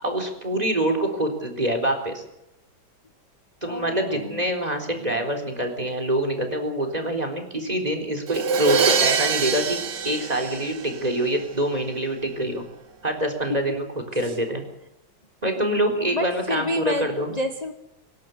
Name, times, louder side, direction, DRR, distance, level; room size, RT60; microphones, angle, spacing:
voice 1, 0.0-2.2 3.6-9.8 10.0-12.6 13.0-13.9 14.1-14.6 15.4-17.3, right 1 dB, 20° right, 3 dB, 4.0 m, -25 dB
voice 2, 0.5-0.8 3.6-4.4 4.9-5.2 7.0-7.2 14.2-14.4 15.6-17.7, left 2 dB, 20° left, 6 dB, 1.3 m, -31 dB
Crash cymbal, 8.3-11.2, right 5 dB, 60° right, 1.9 m, -24 dB
25.5 x 12.0 x 9.8 m, 0.87 s
omnidirectional pair, 2.2 m